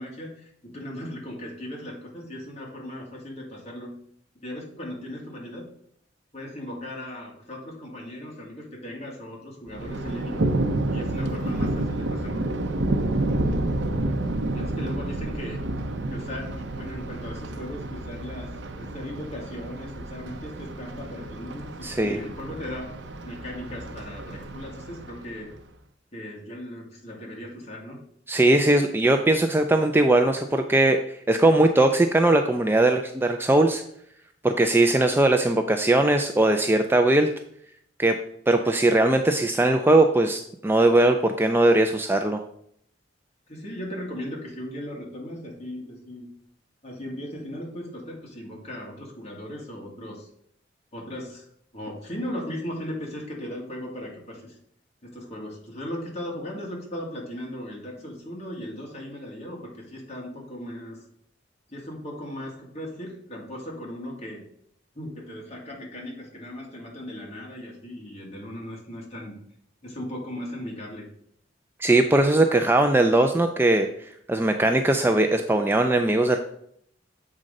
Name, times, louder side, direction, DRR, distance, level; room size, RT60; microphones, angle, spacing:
voice 1, 0.0-3.9 4.4-5.7 6.3-10.4 10.9-12.5 13.3-13.6 14.5-15.6 16.1-22.9 23.2-25.5 26.1-28.0 38.7-38.8 43.5-46.3 46.8-50.3 50.9-51.5 51.7-54.6 55.0-61.0 61.7-64.4 65.0-69.4 69.8-71.1, left 1 dB, 35° left, -2 dB, 1.9 m, -37 dB
Thunder, 9.7-25.6, right 2 dB, 65° right, 0.7 m, -30 dB
voice 2, 21.8-22.2 28.3-33.8 34.4-37.3 38.0-38.2 38.5-42.4 71.8-76.4, right 2 dB, 10° right, 6 dB, 0.3 m, -20 dB
7.6 x 3.8 x 5.2 m, 0.69 s
head